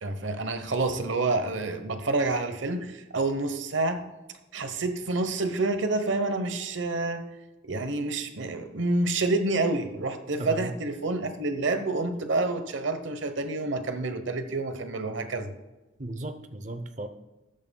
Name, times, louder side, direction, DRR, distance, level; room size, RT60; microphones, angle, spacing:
voice 1, 0.0-4.0 4.5-7.2 7.6-15.5, right 2 dB, 80° right, 9 dB, 1.0 m, -28 dB
voice 2, 10.4-10.7 16.0-17.1, right 1 dB, 40° right, 8 dB, 0.7 m, -36 dB
13.0 x 9.0 x 2.3 m, 1.1 s
head